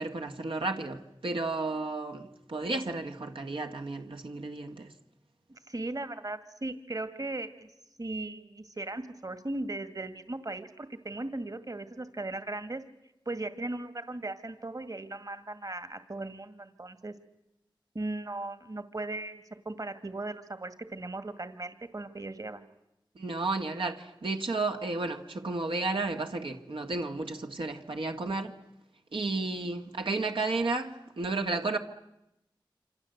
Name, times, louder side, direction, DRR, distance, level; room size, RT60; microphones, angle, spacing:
voice 1, 0.0-4.9 23.2-28.5 29.1-31.8, right 3 dB, 85° right, 1.9 m, -32 dB
voice 2, 5.5-7.7 8.0-12.8 13.3-17.1 17.9-22.6, right 2 dB, 45° right, 2.1 m, -37 dB
27.5 x 26.0 x 8.1 m
wide cardioid pair, 55°, 9 cm